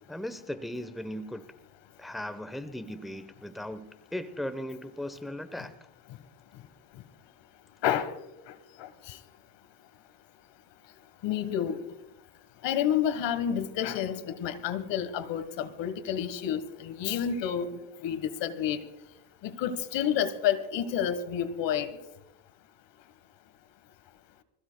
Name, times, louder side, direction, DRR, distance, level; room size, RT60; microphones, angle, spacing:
voice 1, 0.1-1.4 2.0-5.7, left 1 dB, ahead, 11 dB, 1.0 m, -37 dB
voice 2, 7.8-8.1 8.5-8.6 8.8-9.2 11.2-11.8 12.6-17.7 18.0-18.8 19.4-22.0, left 9 dB, 65° left, 12 dB, 1.5 m, -29 dB
25.5 x 15.5 x 2.3 m, 0.93 s
supercardioid pair, 90°, 47 cm